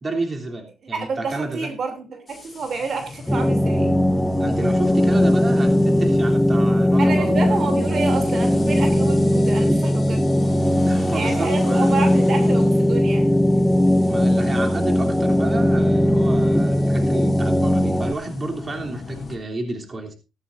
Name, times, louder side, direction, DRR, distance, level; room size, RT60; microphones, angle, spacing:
voice 1, 0.0-1.7 4.4-7.3 10.8-11.9 14.1-20.1, right 2 dB, 35° right, 3.2 m, -30 dB
voice 2, 0.9-3.9 7.0-10.3 11.1-13.3 13.5-13.6, right 4 dB, 55° right, 2.8 m, -28 dB
sound 1, 2.3-19.4, left 3 dB, 30° left, 3.2 m, -39 dB
sound 2, 3.3-18.1, left 1 dB, 5° left, 0.9 m, -19 dB
15.0 x 13.5 x 2.6 m
cardioid pair, 90°, 0 cm